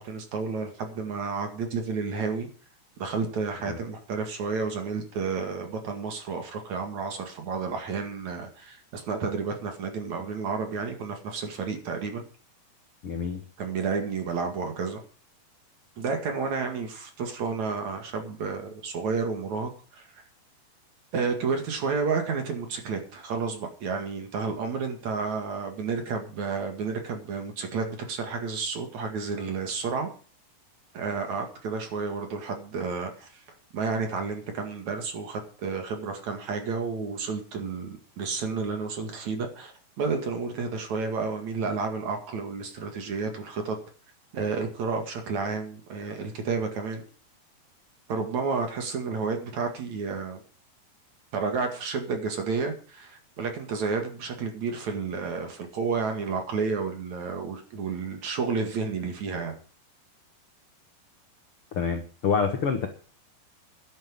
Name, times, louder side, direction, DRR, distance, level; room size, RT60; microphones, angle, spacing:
voice 1, 0.0-2.5 3.0-12.2 13.6-15.0 16.0-20.2 21.1-30.1 30.9-33.4 33.7-43.8 44.3-47.0 48.1-50.4 51.3-59.6, right 4 dB, 50° right, 4 dB, 2.9 m, -31 dB
voice 2, 13.0-13.4 61.7-62.9, left 6 dB, 80° left, 5 dB, 1.2 m, -27 dB
11.0 x 9.2 x 7.4 m, 0.39 s
omnidirectional pair, 4.9 m